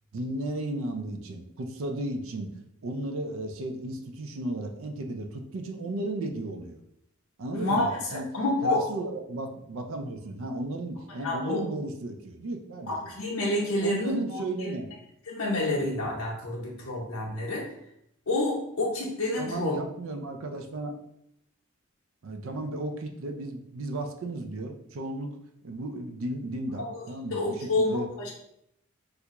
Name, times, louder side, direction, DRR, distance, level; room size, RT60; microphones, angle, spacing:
voice 1, 0.1-2.5 2.8-6.8 7.4-8.3 8.6-13.1 13.8-14.9 19.4-21.0 22.2-25.4 25.6-28.1, right 2 dB, 65° right, 5 dB, 0.4 m, -34 dB
voice 2, 7.6-8.9 11.2-11.6 12.9-14.7 15.3-17.6 18.3-19.7 26.8-27.0 27.3-28.3, left 2 dB, 90° left, -4 dB, 0.7 m, -28 dB
3.3 x 2.4 x 2.9 m, 0.76 s
head